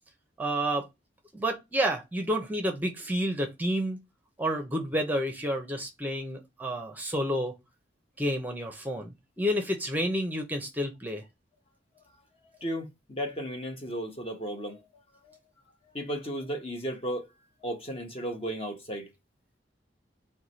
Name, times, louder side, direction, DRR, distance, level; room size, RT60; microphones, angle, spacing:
voice 1, 0.4-0.9 1.3-4.0 4.4-7.5 8.2-11.2, equal, 10° right, 0.7 m, -30 dB
voice 2, 12.6-14.8 15.2-15.4 15.9-17.3 17.6-19.1, equal, 30° left, 0.9 m, -34 dB
4.7 x 2.2 x 4.0 m
head